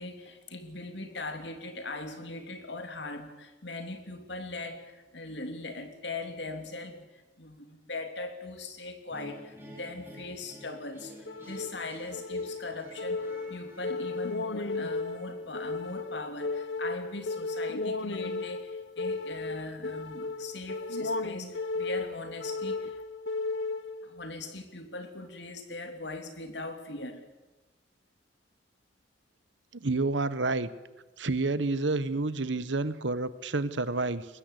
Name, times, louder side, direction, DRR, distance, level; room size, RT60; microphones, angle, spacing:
voice 1, 0.0-23.0 24.0-27.2, left 2 dB, 65° left, 7 dB, 3.0 m, -40 dB
sound 1, 9.1-16.2, equal, 15° right, 5.7 m, -51 dB
sound 2, 11.3-24.2, left 3 dB, 85° left, 1.2 m, -35 dB
voice 2, 29.7-30.7 31.2-34.3, right 3 dB, 80° right, 15 dB, 1.2 m, -29 dB
22.5 x 20.0 x 8.3 m, 1.1 s
head